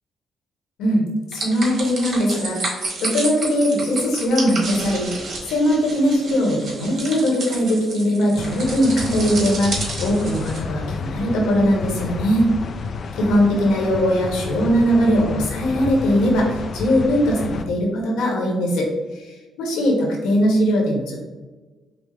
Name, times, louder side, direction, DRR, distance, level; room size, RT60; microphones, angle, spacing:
voice 1, 0.8-5.1 5.5-12.5 13.2-18.9 19.1-19.3 19.6-21.2, equal, 85° left, -1 dB, 1.1 m, -20 dB
sound 1, 1.3-10.6, right 3 dB, 55° right, 1.2 m, -31 dB
sound 2, 8.4-17.6, left 5 dB, 50° left, 0.3 m, -30 dB
5.3 x 2.0 x 3.2 m, 1.2 s
cardioid pair, 90°, 0 cm